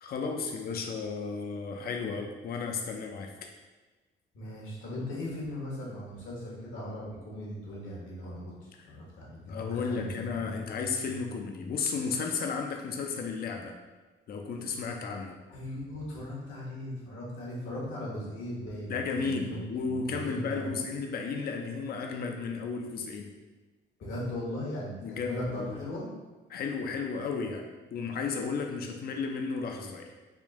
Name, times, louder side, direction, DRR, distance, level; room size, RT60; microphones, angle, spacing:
voice 1, 0.0-3.3 9.5-13.8 14.3-15.3 18.9-23.3 25.0-25.8 26.5-27.6 27.9-30.1, left 5 dB, 50° left, 3 dB, 0.5 m, -33 dB
voice 2, 4.3-10.1 10.3-10.5 15.5-20.7 24.0-24.9 25.2-26.1, left 1 dB, 75° left, -5 dB, 1.3 m, -38 dB
3.6 x 2.5 x 3.6 m, 1.2 s
cardioid pair, 90°, 20 cm